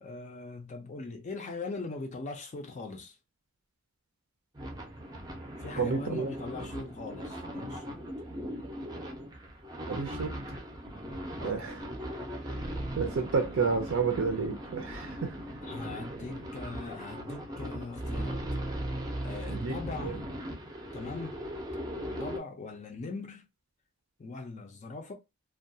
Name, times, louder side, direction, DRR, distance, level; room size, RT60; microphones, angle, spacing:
voice 1, 0.0-3.2 5.6-8.0 11.4-11.7 15.6-18.5 19.2-20.3 20.9-21.4 22.0-23.4 24.2-25.1, left 3 dB, 35° left, 0.4 m, -40 dB
sound 1, 4.5-22.4, equal, 20° right, 0.5 m, -38 dB
voice 2, 5.8-6.3 9.9-10.3 11.4-11.8 12.9-15.3 19.5-20.1, right 5 dB, 70° right, 0.5 m, -30 dB
2.2 x 2.1 x 2.6 m
head